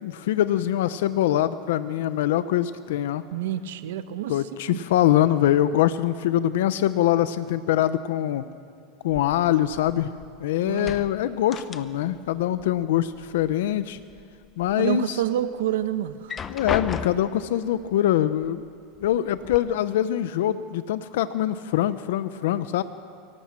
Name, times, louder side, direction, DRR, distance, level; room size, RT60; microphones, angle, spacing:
voice 1, 0.0-3.2 4.3-8.4 9.0-10.1 10.4-14.0 14.6-15.2 16.5-18.6 19.0-22.8, left 12 dB, 80° left, 12 dB, 0.8 m, -23 dB
voice 2, 3.3-4.4 4.7-4.8 10.6-11.0 14.8-16.5, right 11 dB, 80° right, 11 dB, 1.3 m, -28 dB
sound 1, 9.1-10.4 10.7-12.3 12.5-13.5 13.9-14.7 15.2-15.3 16.1-17.5 18.4-18.5 18.9-19.6, left 7 dB, 25° left, 0.9 m, -35 dB
24.5 x 17.5 x 7.6 m, 2.3 s
supercardioid pair, 135°, 0 cm